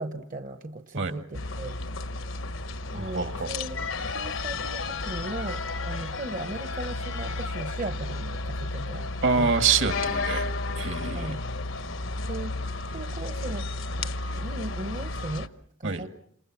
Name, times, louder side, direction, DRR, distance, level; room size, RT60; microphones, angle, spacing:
voice 1, 0.0-1.8 2.9-3.8 4.1-9.1 9.4-9.6 11.1-11.4 12.3-13.7 14.0-14.1 14.4-15.5 15.8-16.1, right 2 dB, 40° right, 7 dB, 1.0 m, -37 dB
sound 1, 1.3-15.5, left 3 dB, 70° left, 1.0 m, -32 dB
voice 2, 2.9-3.5 9.2-10.5 10.8-11.3 15.8-16.0, right 5 dB, 60° right, 7 dB, 1.9 m, -26 dB
29.0 x 27.0 x 6.0 m, 0.68 s
head